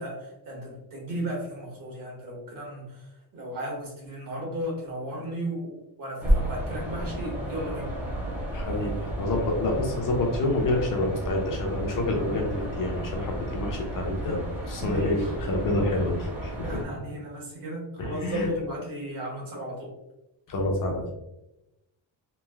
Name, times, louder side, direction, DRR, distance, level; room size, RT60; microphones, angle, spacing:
voice 1, 0.0-7.9 14.8-15.3 16.6-19.9, equal, 45° right, -1 dB, 1.0 m, -35 dB
sound 1, 6.2-16.8, right 1 dB, 5° right, 0.4 m, -32 dB
voice 2, 8.5-15.2 15.5-16.5 18.0-18.5 20.5-21.1, left 2 dB, 45° left, 0 dB, 0.6 m, -28 dB
3.1 x 2.5 x 2.3 m, 0.91 s
cardioid pair, 180°, 45 cm